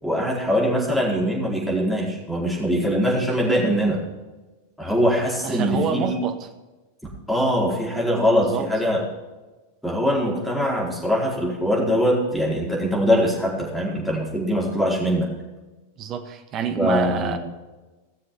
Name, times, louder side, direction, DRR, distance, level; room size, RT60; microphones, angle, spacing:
voice 1, 0.0-4.0 4.8-6.1 7.3-9.0 9.8-15.3 16.8-17.4, equal, ahead, -5 dB, 4.6 m, -22 dB
voice 2, 5.4-6.4 8.4-8.7 16.0-17.4, right 7 dB, 35° right, 6 dB, 1.5 m, -27 dB
18.0 x 7.1 x 5.8 m, 1.2 s
figure-of-eight pair, 90°, 0 cm